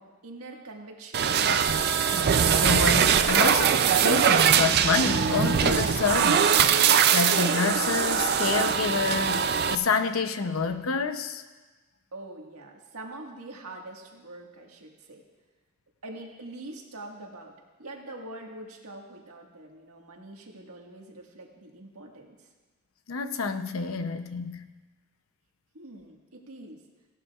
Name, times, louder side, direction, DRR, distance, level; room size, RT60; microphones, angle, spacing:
voice 1, 0.0-1.6 12.1-15.2 16.0-17.5 17.8-22.5 25.7-26.8, right 2 dB, 90° right, 0 dB, 1.7 m, -44 dB
sound 1, 1.1-9.7, right 7 dB, 45° right, 0.4 m, -22 dB
voice 2, 2.4-11.4 23.1-24.6, left 5 dB, 65° left, 9 dB, 0.7 m, -28 dB
17.5 x 11.5 x 2.4 m, 1.3 s
head